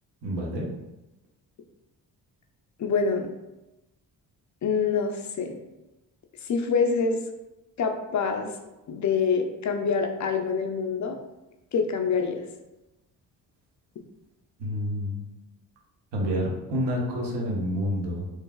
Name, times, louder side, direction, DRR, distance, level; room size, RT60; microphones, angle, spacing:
voice 1, 0.2-0.7 14.6-15.2 16.1-18.3, equal, 60° right, -1 dB, 0.9 m, -28 dB
voice 2, 2.8-3.3 4.6-5.6 6.4-7.2 7.8-8.5 8.9-11.2 11.7-12.4, left 5 dB, 40° left, 4 dB, 0.4 m, -26 dB
3.1 x 2.4 x 2.3 m, 0.97 s
supercardioid pair, 50°, 47 cm